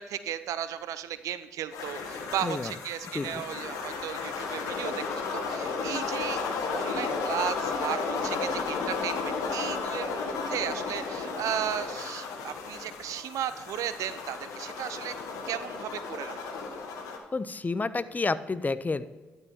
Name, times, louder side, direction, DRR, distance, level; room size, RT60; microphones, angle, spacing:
voice 1, 0.0-5.0 5.3-6.4 6.7-15.1 15.5-16.4, right 10 dB, 70° right, 13 dB, 0.5 m, -35 dB
sound 1, 1.7-17.2, left 4 dB, 75° left, 1.2 m, -33 dB
voice 2, 2.4-2.7 3.1-3.4 17.3-19.1, left 3 dB, 30° left, 15 dB, 0.5 m, -30 dB
11.5 x 5.6 x 4.3 m, 1.3 s
hypercardioid pair, 45°, 6 cm